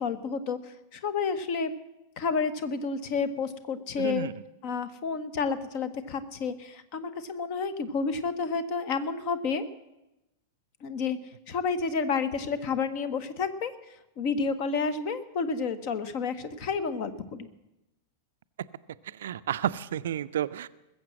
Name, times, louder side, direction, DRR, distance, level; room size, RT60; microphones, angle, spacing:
voice 1, 0.0-1.7 2.2-4.3 4.6-9.7 10.8-11.2 11.5-17.5, left 5 dB, 45° left, 13 dB, 1.1 m, -30 dB
voice 2, 4.0-4.3 19.0-20.7, right 10 dB, 60° right, 14 dB, 0.4 m, -31 dB
20.5 x 7.5 x 7.5 m, 0.94 s
figure-of-eight pair, 95°, 0 cm